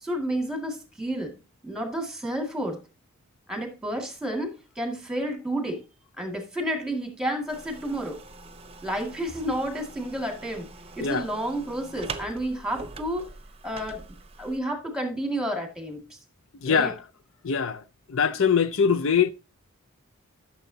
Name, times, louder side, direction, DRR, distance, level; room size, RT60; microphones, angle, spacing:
voice 1, 0.0-1.3 1.6-2.8 3.5-5.8 6.2-8.2 8.8-10.7 11.0-13.3 13.6-14.0 14.4-16.2 16.7-16.9, right 1 dB, 5° right, 2.0 m, -30 dB
sound 1, 7.5-14.6, right 3 dB, 25° right, 0.8 m, -43 dB
voice 2, 16.6-17.0 17.4-17.8 18.1-19.3, left 6 dB, 60° left, 0.5 m, -22 dB
12.5 x 7.0 x 2.8 m
head